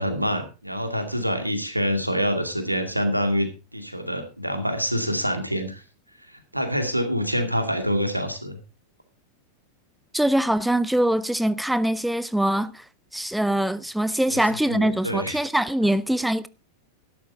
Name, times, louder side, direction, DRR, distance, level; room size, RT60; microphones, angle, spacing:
voice 1, 0.0-5.8 6.5-8.6 14.3-14.4 14.7-15.4, equal, 90° right, 2.3 m, -26 dB
voice 2, 10.1-12.8 13.1-16.5, right 1 dB, ahead, 0.6 m, -23 dB
13.0 x 11.5 x 3.9 m
figure-of-eight pair, 90°, 0 cm